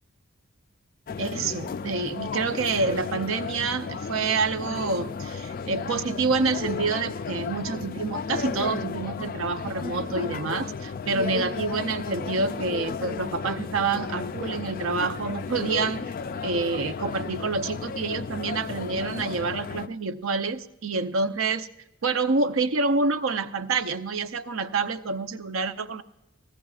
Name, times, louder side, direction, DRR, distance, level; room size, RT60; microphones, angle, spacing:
sound 1, 1.1-19.9, left 5 dB, 40° left, 0.3 m, -34 dB
voice 1, 1.2-16.0 16.4-21.7 22.0-26.0, right 4 dB, 60° right, 9 dB, 0.7 m, -27 dB
20.0 x 16.0 x 2.4 m, 0.94 s
head